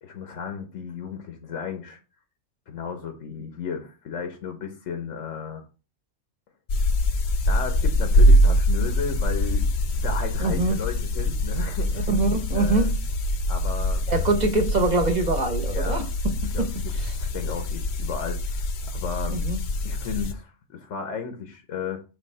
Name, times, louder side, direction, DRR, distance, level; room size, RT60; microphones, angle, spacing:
voice 1, 0.0-2.0 2.7-5.6 7.5-9.7 9.9-12.1 12.5-12.9 13.5-14.0 15.7-16.1 16.5-16.6 17.1-19.4 19.8-22.0, left 6 dB, 90° left, 1.2 m, -34 dB
sound 1, 6.7-20.3, equal, 65° left, 0.9 m, -24 dB
voice 2, 10.4-10.8 12.1-12.9 14.1-16.7 16.9-17.1 19.3-19.6, right 3 dB, 40° right, 1.1 m, -24 dB
5.6 x 3.4 x 5.4 m
omnidirectional pair, 1.2 m